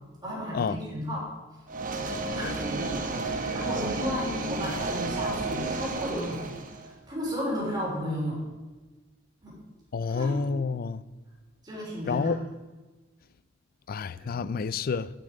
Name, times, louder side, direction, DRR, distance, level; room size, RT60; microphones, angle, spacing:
voice 1, 0.2-1.3 2.3-2.6 3.2-8.4 9.4-9.5 10.0-10.3 11.6-12.3 14.2-14.3, equal, 20° right, 3.5 m, -33 dB
sound 1, 1.7-6.9, right 3 dB, 45° right, 0.9 m, -32 dB
voice 2, 9.9-11.0 12.1-12.4 13.9-15.1, left 5 dB, 50° left, 0.4 m, -29 dB
10.5 x 6.7 x 5.1 m
head